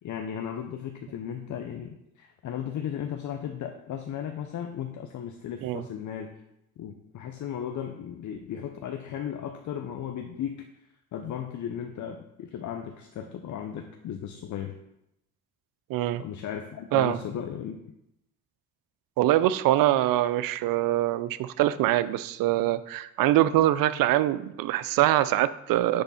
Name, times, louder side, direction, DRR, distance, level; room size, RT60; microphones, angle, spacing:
voice 1, 0.0-6.3 6.8-10.7 11.1-14.7 16.2-17.8, left 9 dB, 60° left, 5 dB, 0.7 m, -35 dB
voice 2, 15.9-16.2 16.9-17.2 19.2-26.0, right 14 dB, 75° right, 15 dB, 0.5 m, -24 dB
10.0 x 3.4 x 4.2 m, 0.83 s
supercardioid pair, 75°, 34 cm